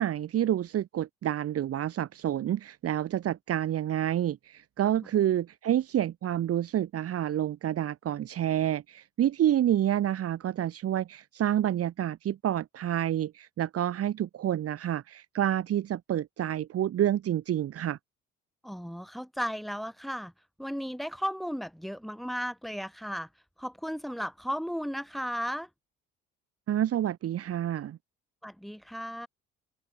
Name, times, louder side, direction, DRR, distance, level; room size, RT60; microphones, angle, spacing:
voice 1, 0.0-18.0 26.7-28.0, right 11 dB, 55° right, 1.5 m, -28 dB
voice 2, 18.6-20.3 20.6-23.3 23.6-25.7 28.4-29.3, equal, ahead, 7.7 m, -35 dB
open air
supercardioid pair, 90°, 29 cm